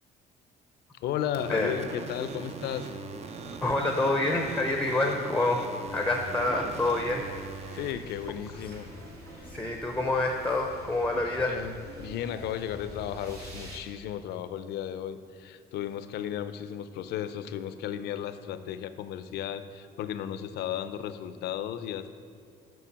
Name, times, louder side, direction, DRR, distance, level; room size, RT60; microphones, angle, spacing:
voice 1, 0.9-3.0 6.2-6.4 7.7-8.9 11.1-22.1, left 10 dB, 75° left, 12 dB, 0.6 m, -35 dB
sound 1, 1.3-7.9, right 4 dB, 40° right, 0.7 m, -40 dB
voice 2, 3.6-7.3 7.6-8.0 8.7-8.8 9.5-11.7, left 2 dB, 5° left, 3 dB, 0.7 m, -28 dB
sound 2, 5.8-13.8, equal, 70° right, 2.1 m, -46 dB
6.9 x 6.1 x 7.4 m, 2.4 s
cardioid pair, 110°, 17 cm